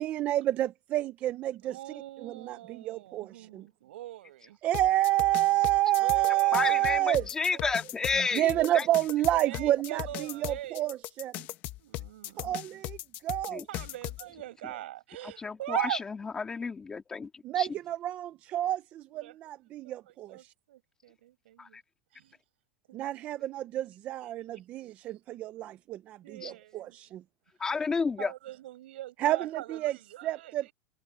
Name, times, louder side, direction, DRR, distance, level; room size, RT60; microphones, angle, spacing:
voice 1, 0.0-3.7 4.6-7.3 8.2-11.4 12.4-13.7 17.4-20.5 22.9-27.2 29.2-30.0 30.2-30.7, right 14 dB, 25° right, 0.4 m, -29 dB
voice 2, 1.6-4.6 6.0-6.7 7.0-7.1 7.6-7.7 9.4-10.8 11.8-12.6 13.7-16.0 19.1-19.3 19.8-21.8 22.1-22.4 22.9-23.0 24.4-24.6 26.2-26.9 28.2-30.7, right 14 dB, 85° right, 7.6 m, -41 dB
sound 1, 4.7-14.2, left 16 dB, 30° left, 0.8 m, -38 dB
voice 3, 6.5-8.5 8.7-8.9 13.5-13.6 15.2-17.7 21.6-21.8 26.4-26.5 27.6-28.3, left 4 dB, 10° left, 2.3 m, -31 dB
supercardioid pair, 180°, 6 cm